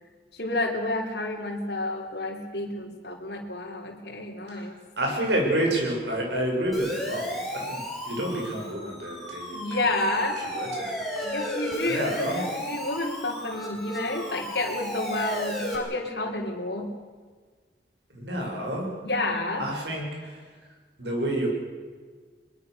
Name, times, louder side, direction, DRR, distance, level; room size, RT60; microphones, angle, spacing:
voice 1, 0.3-4.7 9.5-10.4 11.2-17.0 19.0-19.6, left 2 dB, 70° left, 0 dB, 3.4 m, -30 dB
voice 2, 4.5-9.9 10.2-11.0 11.9-12.4 18.1-18.9 19.6-20.5 21.0-21.5, right 1 dB, 80° right, 0 dB, 7.4 m, -29 dB
Siren, 6.7-15.8, equal, ahead, 5.4 m, -34 dB
23.0 x 21.5 x 6.7 m, 1.5 s
head